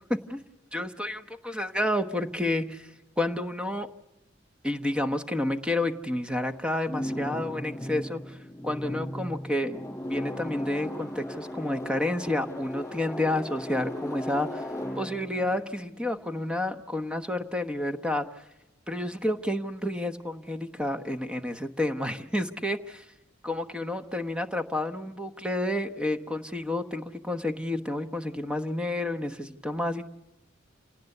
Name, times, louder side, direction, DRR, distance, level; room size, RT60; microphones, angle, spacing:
voice 1, 0.7-2.9 3.2-3.9 4.6-8.4 8.6-9.8 10.1-14.7 15.0-18.4 18.9-23.0 23.4-30.1, left 1 dB, 5° right, 8 dB, 1.1 m, -30 dB
sound 1, 6.9-16.8, equal, 15° left, 6.5 m, -37 dB
27.5 x 18.0 x 6.7 m, 0.94 s
head